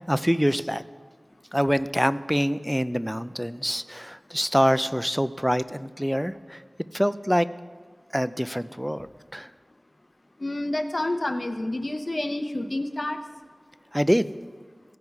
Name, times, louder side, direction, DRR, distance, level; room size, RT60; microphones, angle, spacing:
voice 1, 0.1-0.8 1.5-6.6 6.9-7.5 8.1-9.1 9.3-9.5 13.9-14.3, equal, ahead, 14 dB, 0.3 m, -25 dB
voice 2, 10.4-13.2, left 1 dB, 50° left, 7 dB, 0.7 m, -28 dB
16.0 x 5.3 x 4.6 m, 1.5 s
wide cardioid pair, 60°, 0 cm